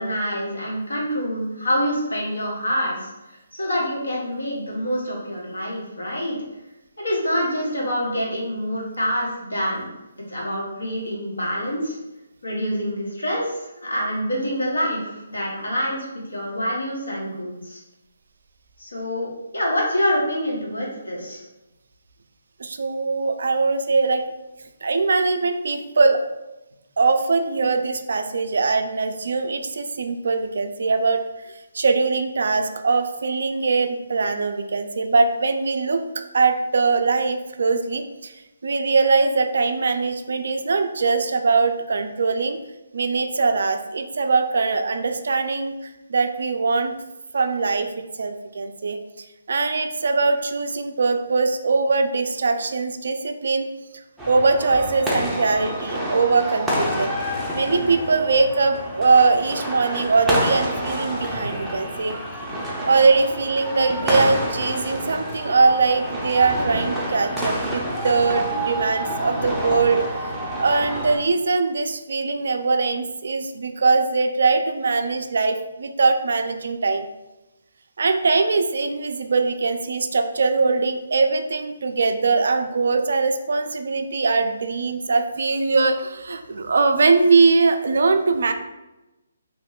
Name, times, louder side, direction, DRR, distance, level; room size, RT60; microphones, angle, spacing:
voice 1, 0.0-6.4 7.0-9.9 10.3-12.0 12.4-17.8 18.8-21.4, equal, 90° left, -4 dB, 1.1 m, -26 dB
voice 2, 22.6-24.2 24.8-26.2 27.0-38.3 38.6-42.6 42.9-47.0 47.3-53.7 54.3-57.1 57.5-62.2 62.9-70.1 70.5-77.1 78.0-88.5, right 4 dB, 70° right, 7 dB, 0.3 m, -21 dB
sound 1, 54.2-71.2, equal, 5° right, 0.5 m, -28 dB
2.9 x 2.1 x 3.6 m, 1.0 s
figure-of-eight pair, 150°, 0 cm